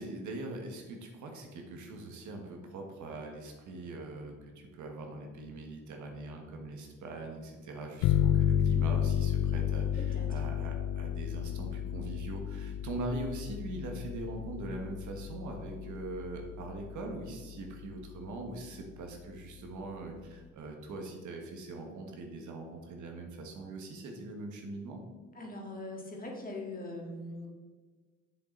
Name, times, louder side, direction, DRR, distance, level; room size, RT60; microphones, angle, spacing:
voice 1, 0.0-25.0, right 2 dB, 75° right, 2 dB, 1.5 m, -42 dB
sound 1, 8.0-17.3, left 10 dB, 80° left, 0.5 m, -32 dB
voice 2, 10.0-10.4 25.3-27.5, left 2 dB, 30° left, 0 dB, 2.0 m, -41 dB
7.7 x 6.9 x 3.9 m, 1.4 s
cardioid pair, 90°, 30 cm